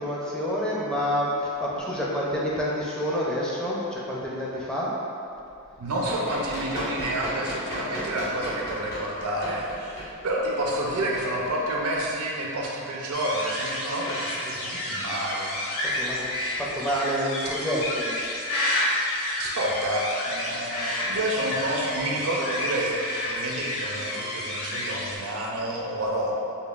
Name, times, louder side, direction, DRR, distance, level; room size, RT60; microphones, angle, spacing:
voice 1, 0.0-4.9 15.8-16.3 16.6-18.3 25.2-25.3, equal, 5° left, -6 dB, 0.4 m, -28 dB
Run, 5.7-12.1, equal, 45° left, 1.0 m, -36 dB
voice 2, 5.8-10.0 10.2-16.0 19.4-26.3, right 1 dB, 85° right, -2 dB, 0.6 m, -29 dB
sound 1, 13.1-25.2, left 1 dB, 75° left, 0.8 m, -30 dB
5.2 x 2.2 x 2.4 m, 2.7 s
head